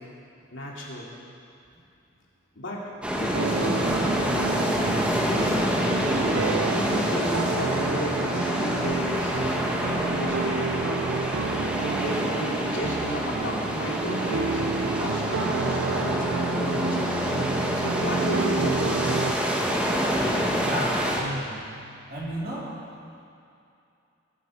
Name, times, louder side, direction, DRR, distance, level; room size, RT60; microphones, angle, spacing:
voice 1, 0.5-1.1 2.6-2.8 3.2-3.8 5.2-5.7 6.7-9.5 9.8-10.9 12.0-17.4 17.7-19.5, equal, 70° left, -3 dB, 2.7 m, -34 dB
sound 1, 3.0-21.2, equal, 5° right, 1.3 m, -27 dB
sound 2, 3.3-19.3, right 4 dB, 75° right, 0.5 m, -30 dB
voice 2, 20.6-21.6 22.1-22.7, equal, 50° right, -6 dB, 3.6 m, -32 dB
20.0 x 10.5 x 4.6 m, 2.6 s
head